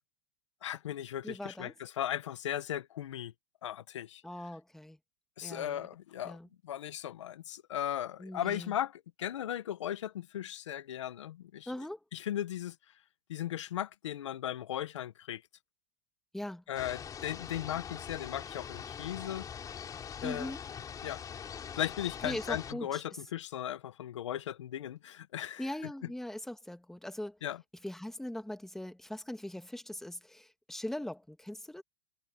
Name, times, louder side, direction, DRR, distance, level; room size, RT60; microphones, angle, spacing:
voice 1, 0.6-3.3 3.6-4.2 5.4-6.4 6.6-11.7 12.1-12.7 13.3-15.4 16.7-19.5 20.2-20.6 21.0-21.2 21.8-25.9 27.4-27.6, left 11 dB, 85° left, 1.4 m, -37 dB
voice 2, 1.2-1.7 4.2-5.0 5.4-5.9 6.2-6.5 8.2-8.7 11.7-12.0 16.3-16.6 20.2-20.6 22.2-23.0 25.6-27.4 27.8-31.8, left 1 dB, ahead, 1.9 m, -40 dB
sound 1, 16.7-22.7, left 7 dB, 25° left, 4.4 m, -43 dB
hypercardioid pair, 125°, 15 cm